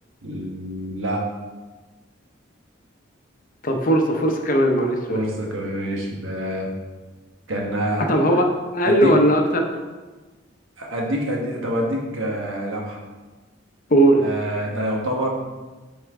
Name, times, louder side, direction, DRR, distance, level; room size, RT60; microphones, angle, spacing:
voice 1, 0.2-1.2 5.1-6.7 7.5-8.1 8.8-9.2 10.8-13.0 14.2-15.3, equal, 90° right, -1 dB, 1.3 m, -26 dB
voice 2, 3.6-5.2 8.1-8.5 8.7-9.7 13.9-14.2, right 1 dB, 45° left, 3 dB, 0.7 m, -18 dB
6.5 x 4.3 x 3.6 m, 1.3 s
head